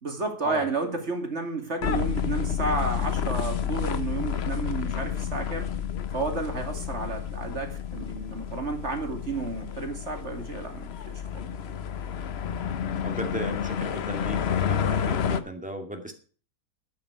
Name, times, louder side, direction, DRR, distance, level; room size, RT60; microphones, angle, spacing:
voice 1, 0.0-5.7 6.1-11.4, right 3 dB, 45° right, 5 dB, 2.7 m, -31 dB
sound 1, 1.8-15.4, left 8 dB, 50° left, 0.9 m, -30 dB
voice 2, 13.0-16.1, right 1 dB, 5° right, 4 dB, 2.3 m, -36 dB
11.5 x 8.9 x 6.3 m, 0.40 s
omnidirectional pair, 1.7 m